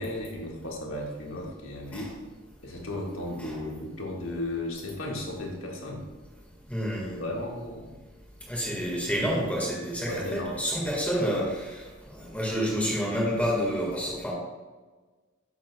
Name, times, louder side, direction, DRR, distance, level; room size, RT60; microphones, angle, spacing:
voice 1, 0.0-2.1 2.6-6.0 7.1-7.9 10.1-10.6, left 1 dB, 80° left, -1 dB, 1.7 m, -35 dB
voice 2, 6.7-7.2 8.5-14.3, equal, 5° left, -4 dB, 1.6 m, -29 dB
9.0 x 7.4 x 2.2 m, 1.3 s
head